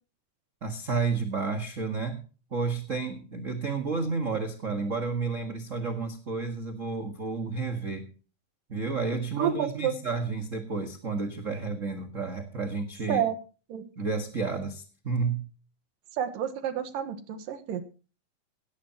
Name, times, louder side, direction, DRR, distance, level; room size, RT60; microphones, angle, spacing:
voice 1, 0.6-2.2 2.5-8.0 8.7-13.2 14.0-15.5, right 4 dB, 35° right, 6 dB, 1.3 m, -31 dB
voice 2, 9.4-9.9 13.1-13.4 13.7-13.9 16.1-17.8, right 9 dB, 80° right, 10 dB, 3.1 m, -29 dB
18.0 x 13.5 x 3.0 m, 0.36 s
omnidirectional pair, 3.9 m